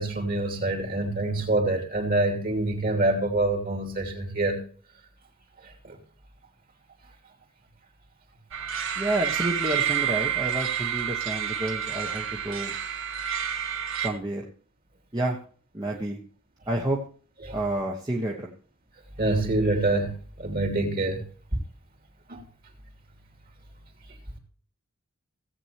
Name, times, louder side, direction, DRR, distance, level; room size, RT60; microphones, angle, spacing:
voice 1, 0.0-4.6 5.8-6.0 17.4-17.6 19.2-20.1 20.4-21.2 22.3-22.4, right 2 dB, 45° right, 2 dB, 2.8 m, -26 dB
sound 1, 8.5-14.1, right 9 dB, 65° right, 1.5 m, -29 dB
voice 2, 9.0-12.7 14.0-14.5 15.1-15.4 15.7-16.2 16.7-17.0 17.5-18.5, right 1 dB, 20° right, -2 dB, 1.2 m, -29 dB
17.0 x 8.0 x 2.9 m, 0.42 s
head